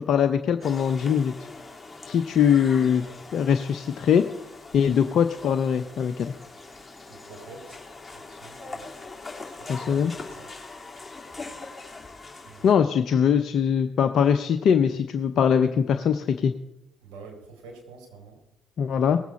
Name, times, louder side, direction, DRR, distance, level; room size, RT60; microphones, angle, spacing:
voice 1, 0.1-1.3 2.1-3.1 3.3-4.2 4.7-6.3 9.7-10.1 12.6-16.5 18.8-19.2, left 7 dB, 55° left, 8 dB, 0.6 m, -22 dB
sound 1, 0.6-12.7, left 3 dB, 15° left, 3.2 m, -42 dB
voice 2, 7.1-7.8 8.1-8.9 9.6-10.5 12.4-12.8 17.0-18.4, right 4 dB, 70° right, 0 dB, 4.4 m, -47 dB
19.0 x 8.2 x 4.2 m, 0.94 s
hypercardioid pair, 50°, 0 cm